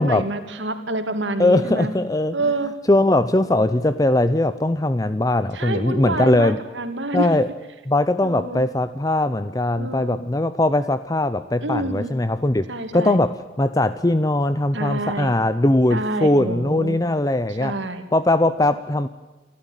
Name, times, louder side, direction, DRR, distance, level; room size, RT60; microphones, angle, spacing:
voice 1, 0.0-1.9 2.3-2.7 5.5-7.3 8.2-8.6 9.8-10.2 11.6-12.1 12.7-13.2 14.7-15.3 15.9-17.0 17.6-18.0, right 2 dB, 90° right, 7 dB, 2.8 m, -27 dB
voice 2, 1.4-2.4 2.9-6.6 7.1-7.5 7.9-12.7 12.9-17.7 18.1-19.1, left 1 dB, 20° left, 13 dB, 0.6 m, -20 dB
28.0 x 13.0 x 9.1 m, 1.2 s
head